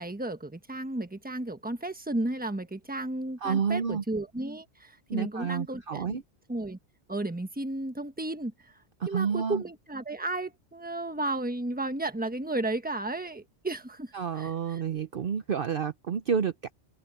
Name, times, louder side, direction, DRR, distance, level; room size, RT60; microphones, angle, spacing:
voice 1, 0.0-6.2 6.5-6.8 7.1-8.7 9.0-14.8, right 2 dB, 5° right, 1.3 m, -33 dB
voice 2, 3.4-4.0 5.1-6.2 9.0-9.6 14.1-16.5, right 6 dB, 50° right, 0.8 m, -29 dB
omnidirectional pair, 1.3 m